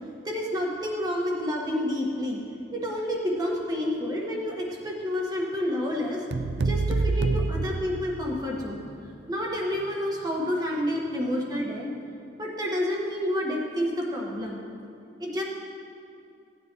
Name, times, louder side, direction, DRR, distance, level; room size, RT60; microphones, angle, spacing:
voice 1, 0.2-2.4 2.7-6.2 6.6-8.9 9.3-11.9 12.4-14.6 15.2-15.4, left 1 dB, 20° right, -3 dB, 1.6 m, -29 dB
sound 1, 6.3-8.6, right 3 dB, 75° right, 0.5 m, -27 dB
17.0 x 9.4 x 3.1 m, 2.6 s
head